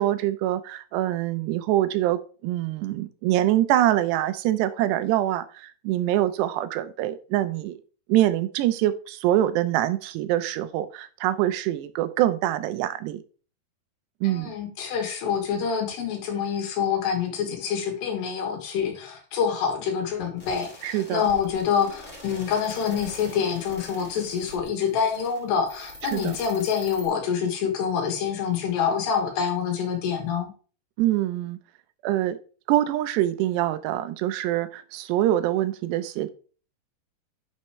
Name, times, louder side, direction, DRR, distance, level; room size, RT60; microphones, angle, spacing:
voice 1, 0.0-7.8 8.1-13.2 14.2-14.5 20.8-21.3 26.0-26.4 31.0-31.6 32.0-32.4 32.7-36.3, right 13 dB, 85° right, 2.8 m, -24 dB
voice 2, 14.2-30.5, left 7 dB, 80° left, 3.8 m, -26 dB
sound 1, 20.4-27.1, left 1 dB, 15° left, 2.3 m, -44 dB
10.5 x 5.7 x 3.2 m
omnidirectional pair, 4.8 m